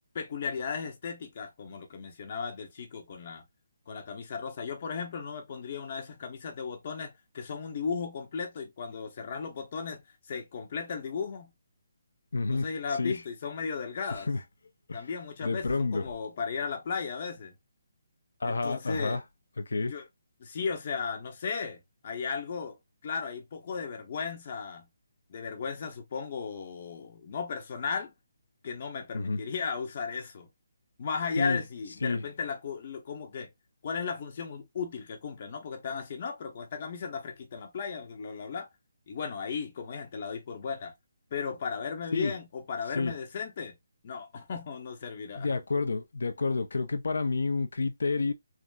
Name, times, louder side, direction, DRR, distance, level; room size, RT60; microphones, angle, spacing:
voice 1, 0.1-3.4 3.9-10.0 10.3-11.5 12.5-14.3 14.9-17.5 18.4-19.2 19.8-20.0 20.4-22.8 23.0-24.9 25.3-28.1 28.6-30.5 31.0-33.5 33.8-38.7 39.1-40.9 41.3-43.8 44.0-45.6, left 5 dB, 40° left, 0.7 m, -35 dB
voice 2, 12.3-12.7 13.0-13.2 14.1-14.4 14.9-15.0 15.4-16.0 18.4-19.2 19.6-19.9 29.1-29.4 31.4-31.6 32.0-32.2 42.1-42.3 42.9-43.1 45.3-48.3, left 3 dB, 80° left, 0.6 m, -29 dB
3.4 x 2.0 x 2.5 m
hypercardioid pair, 165°, 0 cm